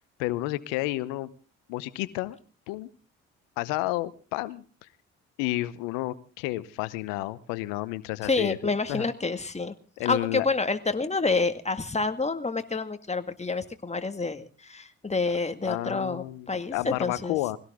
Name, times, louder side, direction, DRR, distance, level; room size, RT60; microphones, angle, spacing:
voice 1, 0.2-1.3 1.7-2.4 2.7-2.9 3.6-4.9 5.4-9.1 10.0-10.5 15.6-17.6, left 18 dB, 85° left, 17 dB, 0.9 m, -31 dB
voice 2, 8.2-9.7 10.1-17.3, left 3 dB, 20° left, 9 dB, 2.0 m, -28 dB
22.0 x 17.0 x 3.7 m, 0.37 s
hypercardioid pair, 45°, 32 cm